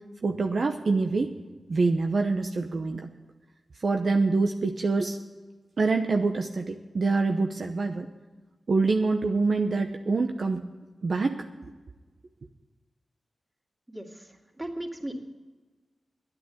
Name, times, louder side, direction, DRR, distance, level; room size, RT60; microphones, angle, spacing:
voice 1, 0.2-1.3 1.7-3.1 3.8-5.2 5.8-8.1 8.7-10.7 11.0-11.7, right 3 dB, 60° right, 5 dB, 0.8 m, -25 dB
voice 2, 13.9-15.2, right 1 dB, 15° right, 0 dB, 2.7 m, -37 dB
11.0 x 9.1 x 8.2 m, 1.3 s
cardioid pair, 55°, 0 cm